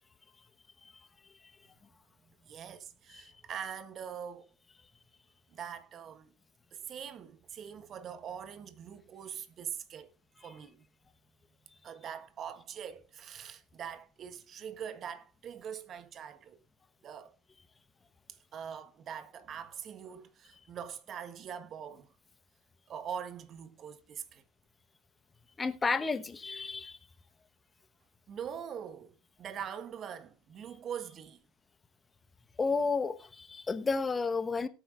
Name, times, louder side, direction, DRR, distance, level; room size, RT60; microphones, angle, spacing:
voice 1, 2.4-4.5 5.5-6.3 6.7-10.1 10.4-10.8 11.8-16.6 17.0-17.3 18.5-22.1 22.9-24.4 28.3-31.4, right 8 dB, 40° right, 1.3 m, -43 dB
voice 2, 25.6-27.0 32.6-34.7, left 4 dB, 20° left, 1.1 m, -31 dB
18.0 x 9.2 x 2.5 m
hypercardioid pair, 75°, 0 cm